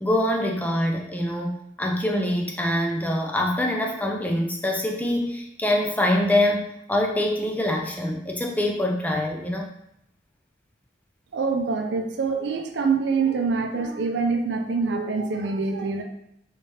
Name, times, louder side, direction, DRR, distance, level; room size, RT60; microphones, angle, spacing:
voice 1, 0.0-9.7, left 1 dB, 10° left, 1 dB, 0.4 m, -24 dB
voice 2, 11.3-16.0, right 4 dB, 70° right, 4 dB, 0.4 m, -25 dB
3.3 x 2.8 x 3.3 m, 0.77 s
head